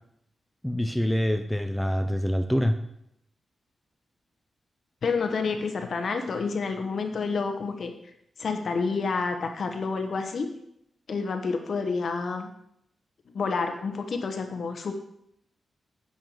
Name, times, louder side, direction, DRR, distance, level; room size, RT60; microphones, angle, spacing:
voice 1, 0.6-2.8, equal, 5° left, 8 dB, 0.5 m, -25 dB
voice 2, 5.0-7.9 8.4-10.5 11.1-12.5 13.3-14.9, left 4 dB, 50° left, 6 dB, 1.0 m, -29 dB
9.0 x 5.5 x 7.0 m, 0.75 s
wide cardioid pair, 165°, 0 cm